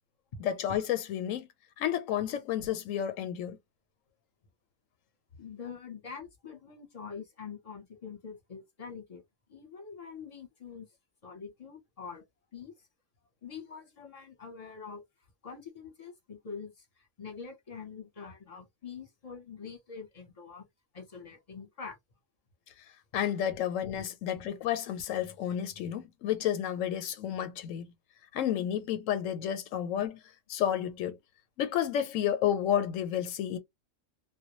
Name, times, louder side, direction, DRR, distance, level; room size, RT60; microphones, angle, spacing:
voice 1, 0.4-1.5 1.8-3.6 23.1-27.9 28.3-30.2 30.5-31.2 31.6-33.6, left 10 dB, 85° left, 1.0 m, -31 dB
voice 2, 5.4-9.2 9.5-10.9 11.2-12.2 12.5-12.7 13.4-15.0 15.4-20.7 20.9-22.0 24.0-24.1, left 6 dB, 35° left, 0.7 m, -45 dB
2.2 x 2.0 x 2.9 m
omnidirectional pair, 1.3 m